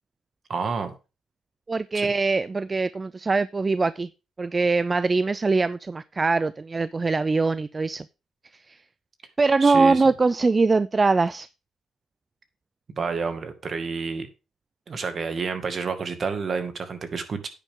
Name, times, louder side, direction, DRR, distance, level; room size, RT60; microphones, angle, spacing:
voice 1, 0.5-0.9 1.9-2.1 9.6-10.0 13.0-14.3 14.9-17.5, right 5 dB, 45° right, 2.1 m, -29 dB
voice 2, 1.7-4.1 4.4-8.1 8.5-8.8 9.4-11.5, right 3 dB, 25° right, 0.4 m, -22 dB
10.0 x 9.2 x 3.8 m
cardioid pair, 90°, 0 cm